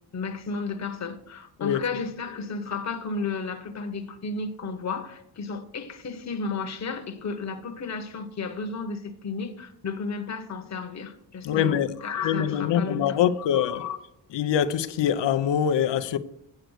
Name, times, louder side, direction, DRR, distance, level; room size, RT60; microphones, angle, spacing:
voice 1, 0.1-14.0, left 4 dB, 40° left, 1.0 m, -33 dB
voice 2, 11.4-11.9 12.2-13.8 14.3-16.2, left 9 dB, 90° left, 0.7 m, -24 dB
8.0 x 7.7 x 6.4 m
wide cardioid pair, 130°, 42 cm